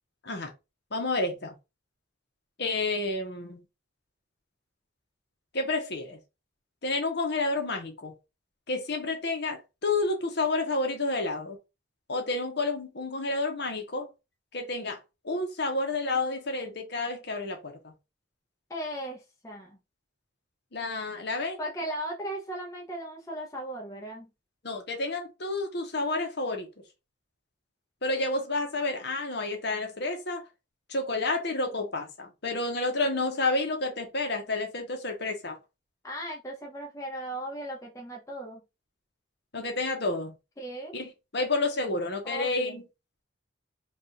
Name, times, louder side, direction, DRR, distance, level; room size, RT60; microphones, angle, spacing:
voice 1, 0.9-1.5 2.6-3.6 5.5-6.2 6.8-8.1 8.7-11.6 12.1-14.1 14.5-15.0 15.2-17.9 20.7-21.6 24.6-26.7 28.0-30.4 30.9-35.6 39.5-40.3 40.9-42.8, left 2 dB, 55° left, 1.0 m, -30 dB
voice 2, 18.7-19.8 21.6-24.3 36.0-38.6 40.6-40.9 42.2-42.8, right 1 dB, 15° left, 0.7 m, -37 dB
3.5 x 2.4 x 4.2 m
head